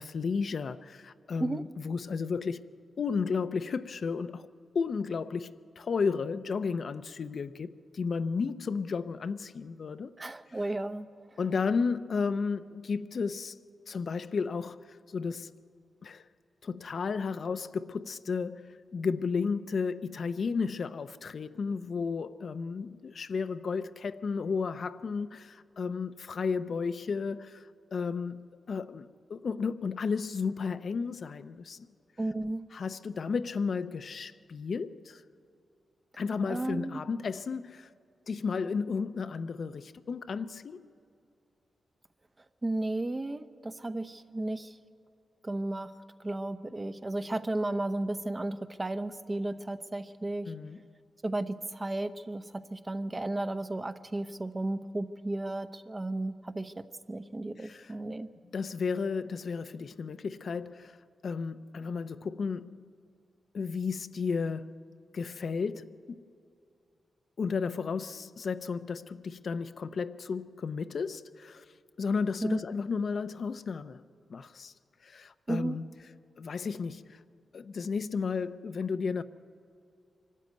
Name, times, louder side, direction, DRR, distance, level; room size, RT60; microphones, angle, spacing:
voice 1, 0.0-2.7 3.0-4.5 4.7-10.2 11.4-13.6 13.9-15.5 16.0-16.2 16.6-31.9 32.7-35.2 36.2-37.9 38.3-40.8 50.5-50.8 57.6-57.9 58.5-61.0 61.2-62.9 63.5-64.9 65.1-66.2 67.4-71.6 72.0-74.0 74.3-74.7 75.0-75.9 76.4-77.2 77.5-79.2, left 5 dB, 60° left, 0.6 m, -33 dB
voice 2, 10.2-11.1 32.2-32.6 36.5-37.0 42.6-44.8 45.4-45.9 46.2-50.5 51.2-58.3 72.4-72.6 75.5-75.8, right 2 dB, 25° right, 0.8 m, -34 dB
24.0 x 13.0 x 9.3 m
cardioid pair, 80°, 0 cm